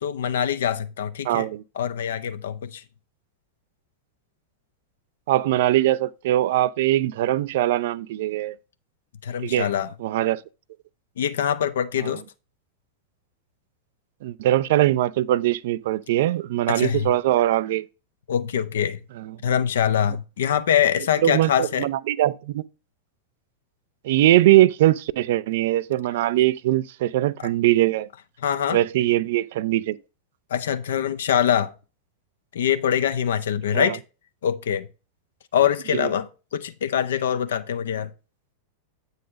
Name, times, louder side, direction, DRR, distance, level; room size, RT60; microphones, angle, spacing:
voice 1, 0.0-1.5 1.8-2.8 9.2-9.9 11.2-12.2 16.8-17.1 18.3-19.0 19.4-21.9 28.4-28.8 30.5-31.7 32.5-34.0 34.4-34.9 35.5-38.1, left 9 dB, 60° left, 0.6 m, -24 dB
voice 2, 1.2-1.6 5.3-8.6 9.4-9.7 10.0-10.4 12.0-12.1 14.2-17.8 19.2-19.4 21.2-22.6 24.0-28.1 28.7-30.0 33.7-34.0 35.9-36.1, right 14 dB, 55° right, 0.3 m, -21 dB
8.3 x 4.1 x 5.0 m
figure-of-eight pair, 90°, 0 cm